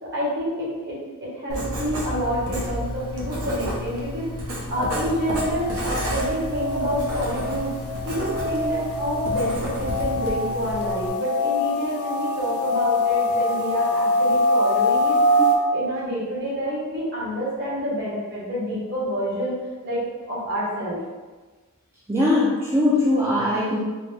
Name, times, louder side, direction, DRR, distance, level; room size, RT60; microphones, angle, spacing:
voice 1, 0.0-7.7 8.0-15.2 15.7-19.5 19.8-21.0, equal, 50° right, -7 dB, 1.3 m, -28 dB
Writing, 1.5-11.1, equal, 85° right, 0.8 m, -31 dB
sound 1, 4.7-15.6, left 1 dB, 85° left, 0.5 m, -24 dB
voice 2, 22.1-23.8, left 1 dB, 10° right, -7 dB, 0.4 m, -20 dB
4.0 x 2.2 x 3.2 m, 1.3 s
head